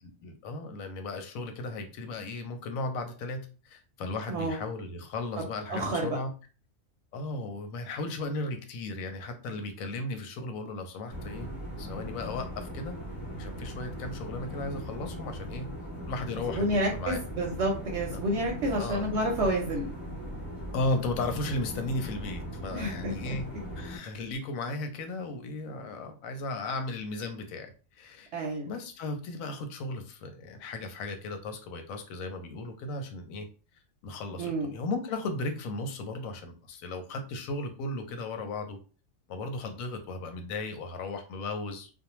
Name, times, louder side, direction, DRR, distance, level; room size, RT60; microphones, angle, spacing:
voice 1, 0.2-6.3 7.1-11.5 11.8-12.9 13.4-15.7 16.1-17.2 18.1-18.2 18.8-19.1 20.7-23.4 23.8-33.5 34.0-38.8 39.3-41.9, left 2 dB, 90° left, 7 dB, 1.0 m, -35 dB
voice 2, 5.7-6.2 16.5-19.9 22.7-23.4 28.3-28.7 34.3-34.7, right 1 dB, 65° right, 0 dB, 0.8 m, -29 dB
sound 1, 11.1-24.0, equal, 15° left, 1.0 m, -39 dB
2.5 x 2.0 x 2.9 m, 0.37 s
omnidirectional pair, 1.4 m